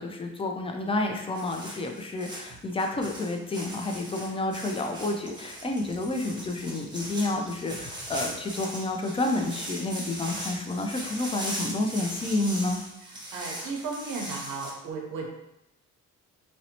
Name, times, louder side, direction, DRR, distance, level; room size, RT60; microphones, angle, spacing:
voice 1, 0.0-12.8, left 2 dB, 20° left, 3 dB, 0.3 m, -30 dB
sound 1, 1.3-14.7, right 1 dB, 15° right, 0.9 m, -39 dB
voice 2, 13.1-15.3, right 4 dB, 90° right, 0 dB, 0.6 m, -35 dB
2.6 x 2.0 x 2.8 m, 0.84 s
cardioid pair, 90°, 30 cm